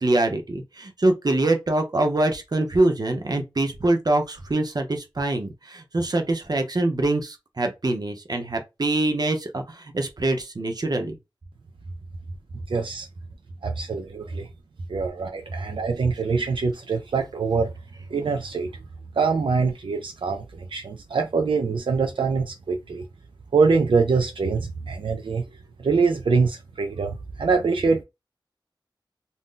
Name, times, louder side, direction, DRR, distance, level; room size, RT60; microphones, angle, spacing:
voice 1, 0.0-11.2, right 2 dB, 50° right, 0.8 m, -24 dB
voice 2, 12.7-13.1 13.6-14.5 14.9-17.7 18.1-18.7 19.1-23.1 23.5-25.4 25.8-28.0, right 4 dB, 80° right, 0.4 m, -24 dB
2.6 x 2.1 x 3.7 m
wide cardioid pair, 55°, 9 cm